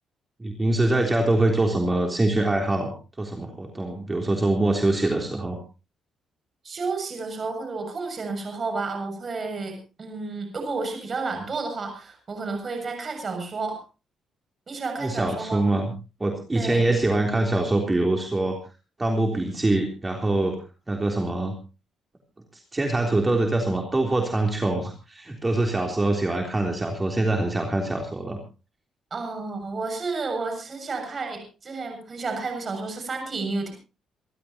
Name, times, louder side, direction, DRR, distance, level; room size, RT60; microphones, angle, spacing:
voice 1, 0.4-5.6 15.0-15.9 16.2-18.6 19.0-20.6 20.9-21.5 22.7-28.4, right 2 dB, 20° right, 2 dB, 3.6 m, -24 dB
voice 2, 6.6-13.8 14.7-15.6 16.5-16.9 29.1-33.7, right 3 dB, 40° right, 5 dB, 7.2 m, -31 dB
28.5 x 13.5 x 2.9 m, 0.32 s
cardioid pair, 90°, 0 cm